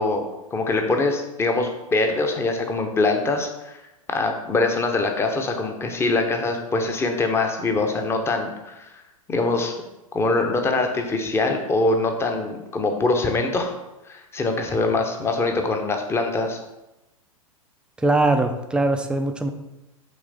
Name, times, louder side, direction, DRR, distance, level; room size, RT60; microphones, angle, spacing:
voice 1, 0.0-3.8 4.1-8.9 9.3-9.7 10.1-13.7 14.1-16.6, left 3 dB, 15° left, 4 dB, 0.9 m, -23 dB
voice 2, 18.0-19.5, right 2 dB, 5° right, 6 dB, 0.5 m, -21 dB
6.4 x 3.3 x 5.4 m, 0.96 s
figure-of-eight pair, 105°, 18 cm